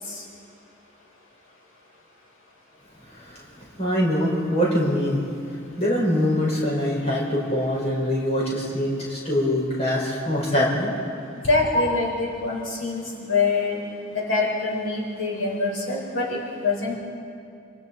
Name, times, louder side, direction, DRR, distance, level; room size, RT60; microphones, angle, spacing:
voice 1, 3.8-5.2 5.8-10.9 11.7-11.8, equal, 30° left, -5 dB, 5.6 m, -23 dB
voice 2, 11.5-13.8 14.1-17.0, left 3 dB, 75° left, -3 dB, 5.1 m, -25 dB
29.0 x 27.5 x 4.4 m, 2.4 s
head